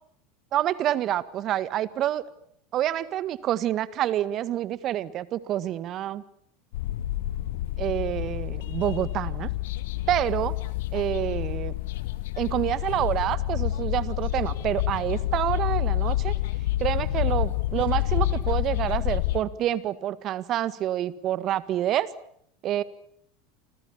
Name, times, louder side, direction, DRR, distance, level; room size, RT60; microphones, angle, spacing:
voice 1, 0.5-2.2 2.7-6.2 7.8-9.5 10.1-10.5 10.9-11.7 12.4-16.3 16.8-22.1 22.6-22.8, right 12 dB, 45° right, 16 dB, 1.7 m, -27 dB
sound 1, 6.7-19.4, left 14 dB, 70° left, 2.0 m, -28 dB
29.5 x 25.0 x 7.3 m, 0.70 s
hypercardioid pair, 80°, 0 cm